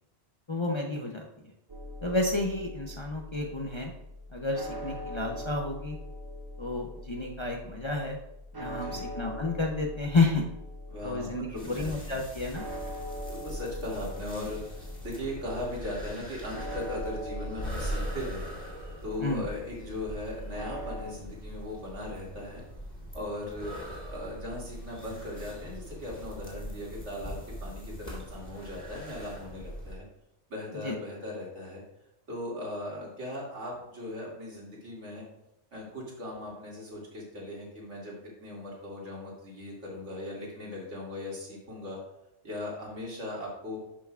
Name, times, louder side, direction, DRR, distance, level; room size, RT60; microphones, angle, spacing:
voice 1, 0.5-1.3 2.0-3.9 4.3-6.0 6.6-8.2 8.6-10.5 11.0-12.7 19.2-19.5 30.8-30.9, left 2 dB, 30° left, 1 dB, 0.6 m, -30 dB
sound 1, 1.7-21.1, left 1 dB, 25° right, 0.5 m, -42 dB
voice 2, 8.6-9.1 10.9-12.1 13.3-18.5 19.0-22.6 23.1-23.7 24.1-30.0 30.5-31.8 32.3-35.2 35.7-42.0 42.4-43.8, left 1 dB, 75° right, -4 dB, 2.6 m, -38 dB
sound 2, 11.5-29.9, equal, 10° left, 2.4 m, -41 dB
11.0 x 5.8 x 2.4 m, 0.83 s
omnidirectional pair, 1.2 m